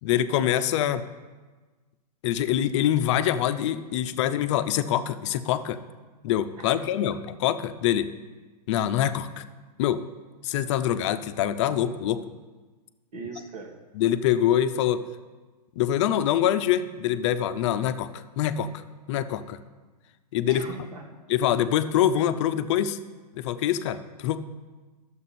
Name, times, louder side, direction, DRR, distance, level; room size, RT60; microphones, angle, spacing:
voice 1, 0.0-1.0 2.2-5.8 6.2-8.1 8.7-9.4 9.8-10.0 10.4-12.2 14.0-15.0 15.8-18.7 19.1-19.6 20.3-20.6 21.3-23.0 23.3-24.4, left 11 dB, 45° left, 11 dB, 0.6 m, -25 dB
voice 2, 13.1-13.8 20.5-21.1, right 4 dB, 70° right, 0 dB, 1.5 m, -40 dB
12.0 x 7.1 x 4.2 m, 1.3 s
hypercardioid pair, 140°, 21 cm